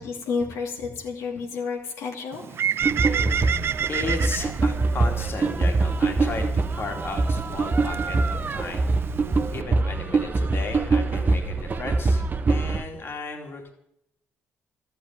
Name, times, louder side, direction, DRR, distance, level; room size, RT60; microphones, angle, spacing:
voice 1, 0.0-2.6, left 5 dB, 85° left, -1 dB, 2.6 m, -31 dB
Bird, 2.3-9.6, right 8 dB, 55° right, 0.5 m, -31 dB
sound 1, 2.8-12.8, right 3 dB, 35° right, 1.1 m, -24 dB
voice 2, 3.9-8.9 9.5-13.7, left 3 dB, 50° left, 3 dB, 2.8 m, -35 dB
12.5 x 8.6 x 9.0 m, 0.80 s
cardioid pair, 75°, 5 cm